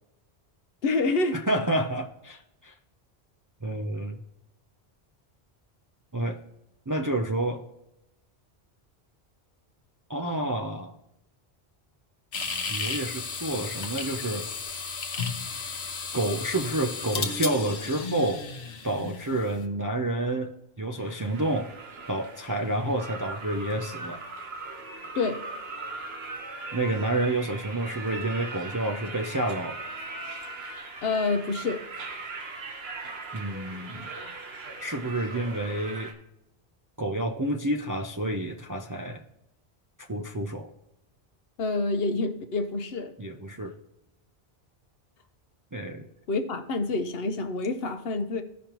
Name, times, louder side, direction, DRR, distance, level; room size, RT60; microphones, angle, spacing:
voice 1, 0.8-1.4 25.1-25.4 31.0-31.8 41.6-43.1 46.3-48.4, left 3 dB, 70° left, 8 dB, 1.0 m, -27 dB
voice 2, 1.3-2.7 3.6-4.2 6.1-6.4 6.9-7.6 10.1-10.9 12.7-14.5 16.1-18.4 18.8-20.5 20.8-21.7 22.1-24.2 26.7-29.8 33.3-34.1 34.8-36.1 37.0-39.2 40.1-40.7 43.2-43.7 45.7-46.1, right 1 dB, 30° right, 2 dB, 0.4 m, -29 dB
sound 1, 12.3-19.6, left 4 dB, 90° left, 1.1 m, -34 dB
sound 2, 21.0-36.1, right 3 dB, 75° right, 1.2 m, -40 dB
14.5 x 5.2 x 2.9 m, 0.88 s
omnidirectional pair, 1.1 m